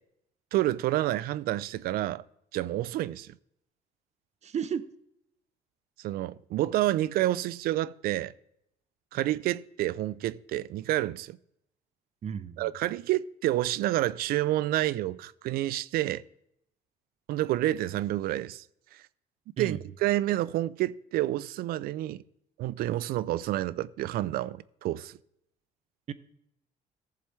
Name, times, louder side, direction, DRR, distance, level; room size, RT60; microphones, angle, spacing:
voice 1, 0.5-2.2 2.5-3.4 6.0-8.3 9.1-11.4 12.6-16.2 17.3-18.7 18.9-19.0 19.6-22.2 22.6-25.2, right 15 dB, 75° right, 0.4 m, -29 dB
voice 2, 4.4-4.9 12.2-12.7 19.6-19.8 26.1-26.2, right 7 dB, 45° right, 0.6 m, -33 dB
14.0 x 7.4 x 3.2 m
cardioid pair, 90°, 16 cm